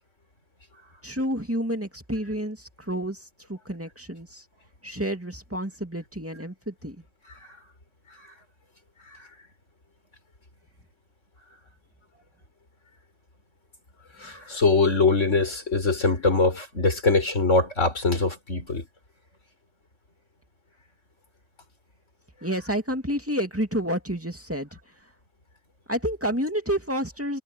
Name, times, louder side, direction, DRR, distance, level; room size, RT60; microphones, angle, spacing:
voice 1, 1.0-3.2 3.5-4.4 4.8-7.0 22.4-24.7 25.9-27.4, equal, 10° right, 2.5 m, -29 dB
voice 2, 14.2-18.9, left 3 dB, 85° left, 4.9 m, -22 dB
omnidirectional pair, 1.2 m